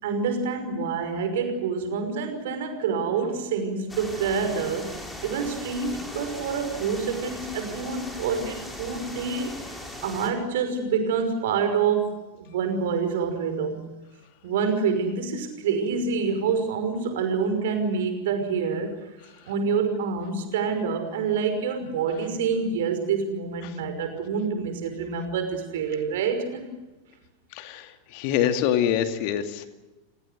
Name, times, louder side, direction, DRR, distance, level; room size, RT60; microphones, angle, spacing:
voice 1, 0.0-9.5 10.0-13.8 14.4-18.9 19.5-26.7, right 5 dB, 55° right, 7 dB, 5.6 m, -27 dB
sound 1, 3.9-10.3, left 1 dB, 5° left, 6.3 m, -39 dB
voice 2, 27.5-29.7, left 10 dB, 45° left, 8 dB, 2.3 m, -25 dB
29.5 x 19.5 x 8.0 m, 1.1 s
figure-of-eight pair, 90°, 0 cm